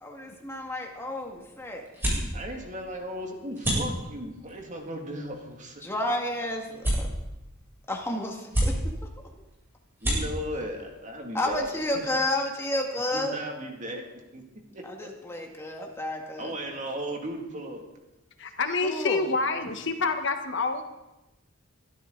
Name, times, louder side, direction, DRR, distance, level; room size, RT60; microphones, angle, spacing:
voice 1, 0.0-1.8 5.8-7.1 7.9-8.8 9.0-9.1 11.3-13.4 14.8-16.5 18.8-19.2, left 1 dB, 10° left, 1 dB, 2.1 m, -31 dB
sound 1, 0.6-12.1, equal, 10° right, 7.5 m, -34 dB
voice 2, 2.3-5.8 10.0-11.6 11.9-12.0 13.1-14.1 14.3-14.4 14.7-15.1 16.4-17.8, right 1 dB, 40° right, 2 dB, 2.5 m, -36 dB
voice 3, 18.4-20.8, left 3 dB, 60° left, 6 dB, 1.4 m, -27 dB
23.0 x 12.5 x 4.0 m, 0.96 s
head